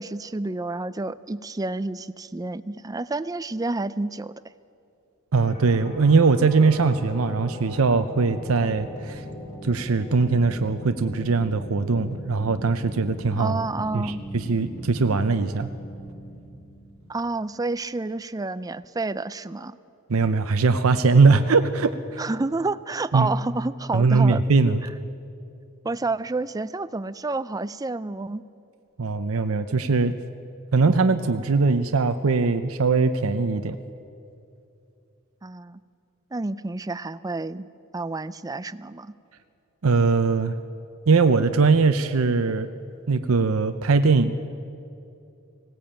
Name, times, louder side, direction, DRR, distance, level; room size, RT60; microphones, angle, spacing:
voice 1, 0.0-4.3 13.4-14.3 17.1-19.8 22.2-24.4 25.8-28.4 35.4-35.8 36.3-39.1, right 2 dB, 15° right, 15 dB, 0.4 m, -29 dB
voice 2, 5.3-9.2 9.6-13.6 13.9-15.7 20.1-22.2 23.1-23.3 23.9-24.8 29.0-30.2 30.7-33.8 39.8-40.6 41.1-42.7 43.1-44.3, right 4 dB, 75° right, 9 dB, 0.7 m, -21 dB
sound 1, 5.4-17.1, equal, 35° left, 4.0 m, -39 dB
19.0 x 17.0 x 8.8 m, 2.6 s
head